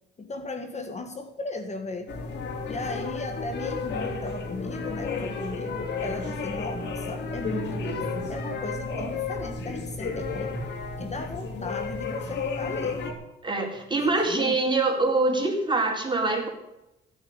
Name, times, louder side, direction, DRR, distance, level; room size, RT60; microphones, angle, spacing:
voice 1, 0.2-2.1 2.6-8.0 8.3-10.5 11.0-13.0 14.2-14.8, left 3 dB, 35° left, 6 dB, 1.7 m, -36 dB
sound 1, 2.1-13.1, left 3 dB, 60° left, 3.2 m, -32 dB
voice 2, 13.4-16.5, right 3 dB, 25° right, 0 dB, 4.4 m, -24 dB
15.5 x 6.9 x 9.7 m, 0.93 s
cardioid pair, 90°, 20 cm